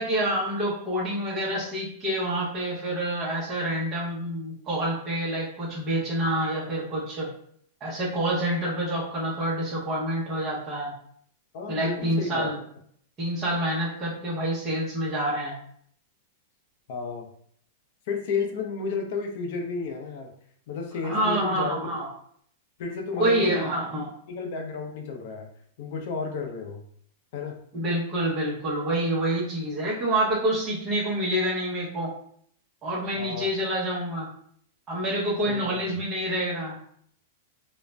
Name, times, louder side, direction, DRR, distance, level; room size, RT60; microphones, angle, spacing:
voice 1, 0.0-7.3 7.8-10.9 11.7-12.5 13.2-15.6 21.0-22.1 23.1-24.1 27.7-32.1 32.8-34.3 34.9-36.9, right 1 dB, 20° right, -7 dB, 0.7 m, -27 dB
voice 2, 11.5-12.5 16.9-17.3 18.1-20.3 20.7-21.9 22.8-23.7 24.3-25.5 25.8-26.8 27.3-27.6 33.2-33.5 35.5-36.0, left 4 dB, 55° left, 4 dB, 0.5 m, -32 dB
2.4 x 2.0 x 3.2 m, 0.64 s
supercardioid pair, 155°, 0 cm